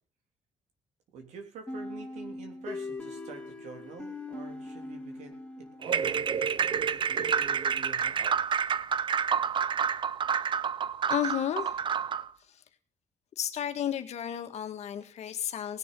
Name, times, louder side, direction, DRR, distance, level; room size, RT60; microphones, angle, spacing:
voice 1, 1.1-8.4, right 5 dB, 85° right, 4 dB, 3.4 m, -46 dB
sound 1, 1.7-6.3, left 2 dB, 10° left, 2.8 m, -41 dB
sound 2, 5.8-12.3, right 7 dB, 45° right, 0.6 m, -29 dB
voice 2, 11.1-12.0 12.4-12.6 13.4-15.8, left 10 dB, 70° left, 8 dB, 1.8 m, -33 dB
18.5 x 6.9 x 6.9 m, 0.40 s
cardioid pair, 80°, 12 cm